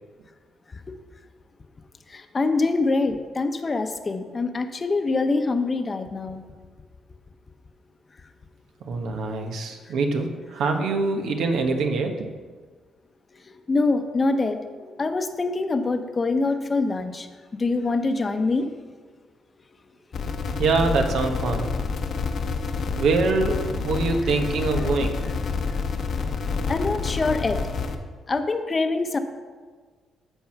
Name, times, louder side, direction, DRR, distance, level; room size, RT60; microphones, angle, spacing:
voice 1, 2.1-6.4 13.7-14.6 15.0-17.3 17.6-18.7 26.7-27.6 28.3-29.2, left 3 dB, 30° left, 7 dB, 0.9 m, -24 dB
voice 2, 8.9-12.3 20.6-21.7 23.0-25.2, right 3 dB, 75° right, 4 dB, 1.3 m, -24 dB
sound 1, 20.1-28.0, left 4 dB, 55° left, 1.0 m, -28 dB
14.0 x 4.6 x 5.9 m, 1.5 s
cardioid pair, 90°, 0 cm